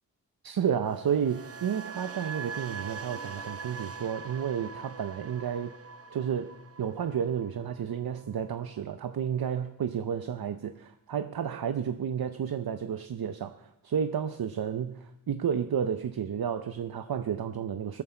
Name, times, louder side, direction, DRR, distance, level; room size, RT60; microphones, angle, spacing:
voice 1, 0.4-5.7 6.1-18.0, right 8 dB, 75° right, 0.7 m, -31 dB
sound 1, 0.8-8.9 9.2-9.6, right 5 dB, 40° right, 0.6 m, -43 dB
17.5 x 14.0 x 4.4 m
wide cardioid pair, 110°, 37 cm